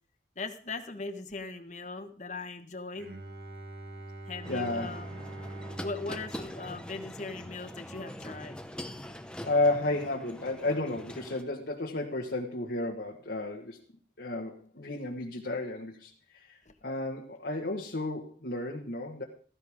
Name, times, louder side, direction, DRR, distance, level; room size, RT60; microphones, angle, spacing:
voice 1, 0.4-3.1 4.3-5.2 5.8-8.6 16.7-16.8, left 3 dB, 45° left, 8 dB, 1.3 m, -39 dB
Bowed string instrument, 2.9-8.7, right 2 dB, 60° right, 2.0 m, -45 dB
sound 1, 4.4-11.4, equal, 5° left, 0.9 m, -43 dB
voice 2, 4.5-4.9 9.4-13.8 14.2-16.6 16.8-19.2, left 2 dB, 70° left, 0 dB, 1.5 m, -32 dB
16.0 x 14.5 x 3.6 m, 0.44 s
head